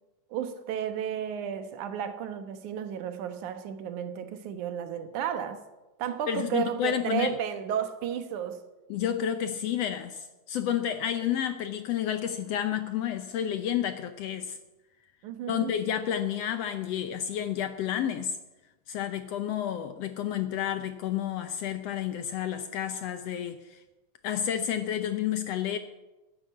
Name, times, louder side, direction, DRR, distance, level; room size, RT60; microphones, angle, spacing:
voice 1, 0.3-5.6 6.0-8.6 15.2-15.7, right 9 dB, 75° right, 2.5 m, -33 dB
voice 2, 6.3-7.3 8.9-14.6 15.5-18.4 18.9-23.8 24.2-25.8, left 10 dB, 75° left, 1.6 m, -30 dB
14.0 x 10.0 x 8.4 m
omnidirectional pair, 3.6 m